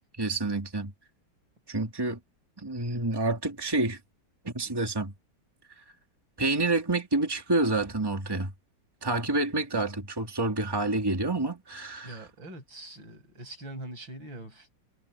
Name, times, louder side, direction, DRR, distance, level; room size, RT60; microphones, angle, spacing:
voice 1, 0.2-0.9 1.7-2.2 2.6-4.0 4.4-5.1 6.4-8.5 9.0-12.1, right 2 dB, 10° right, 2.5 m, -28 dB
voice 2, 12.0-14.7, right 1 dB, 85° right, 8.6 m, -43 dB
omnidirectional pair, 2.0 m